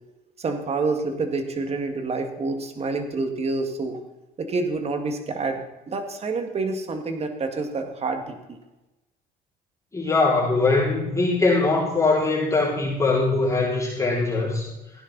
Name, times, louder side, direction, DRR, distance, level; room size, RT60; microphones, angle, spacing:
voice 1, 0.4-4.0 4.4-8.6, right 3 dB, 40° right, 6 dB, 2.0 m, -28 dB
voice 2, 9.9-14.7, left 3 dB, 20° left, -7 dB, 5.8 m, -22 dB
16.5 x 10.5 x 4.1 m, 1.0 s
cardioid pair, 110°, 17 cm